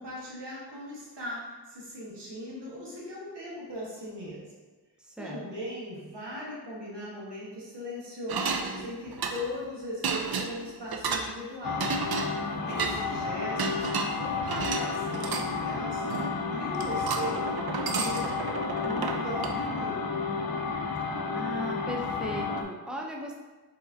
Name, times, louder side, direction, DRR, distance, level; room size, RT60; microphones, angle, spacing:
voice 1, 0.0-4.5 5.2-11.9 12.6-16.1 16.5-20.0, left 1 dB, 90° right, -5 dB, 1.3 m, -39 dB
voice 2, 5.0-5.4 21.3-23.4, equal, ahead, 0 dB, 0.5 m, -37 dB
sound 1, 8.3-9.6 10.0-11.3 11.8-13.0 13.6-15.5 16.1-16.5 16.7-19.6, right 5 dB, 65° right, 0.5 m, -32 dB
sound 2, 11.6-22.6, left 4 dB, 60° left, 0.6 m, -32 dB
4.6 x 4.2 x 2.7 m, 1.2 s
wide cardioid pair, 80°, 40 cm